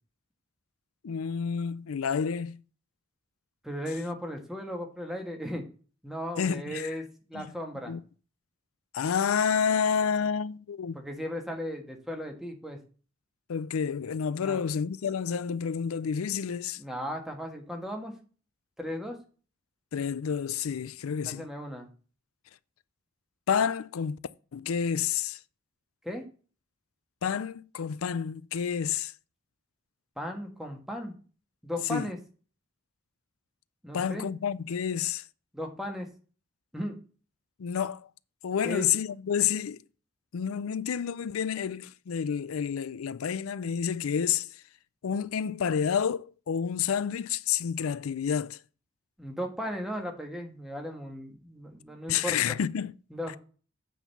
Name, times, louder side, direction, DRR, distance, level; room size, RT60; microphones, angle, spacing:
voice 1, 1.0-2.6 6.4-6.9 7.3-7.5 7.9-8.0 8.9-11.0 13.5-16.8 19.9-21.5 23.5-24.2 24.5-25.4 27.2-29.1 31.9-32.1 33.9-35.2 37.6-38.1 38.4-39.8 40.3-44.5 45.0-48.6 52.1-52.9, left 7 dB, 85° left, 0.4 m, -29 dB
voice 2, 3.6-5.6 6.0-7.9 10.9-12.8 14.4-14.6 16.8-18.1 18.8-19.2 21.2-21.9 26.0-26.3 30.2-31.1 31.6-32.2 33.8-34.3 35.5-36.1 36.7-37.0 38.6-38.9 49.2-52.6 53.1-53.4, equal, ahead, 1.4 m, -36 dB
8.6 x 4.0 x 6.7 m
head